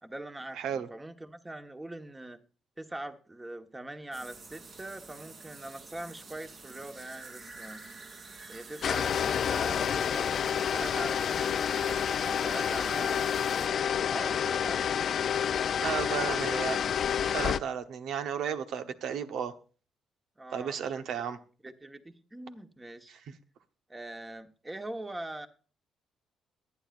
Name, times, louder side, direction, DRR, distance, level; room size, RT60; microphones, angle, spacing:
voice 1, 0.0-2.4 2.8-7.8 8.5-11.6 12.2-13.4 14.1-15.2 20.4-21.0 21.6-23.2 23.9-25.5, right 1 dB, 15° right, 1.3 m, -42 dB
voice 2, 0.6-0.9 15.8-16.8 17.3-19.5 20.5-21.4 23.1-23.2, right 8 dB, 75° right, 1.1 m, -33 dB
sound 1, 4.1-13.7, right 3 dB, 55° right, 3.4 m, -49 dB
sound 2, 8.8-17.6, left 8 dB, 60° left, 0.5 m, -29 dB
22.5 x 9.2 x 2.6 m
cardioid pair, 90°, 0 cm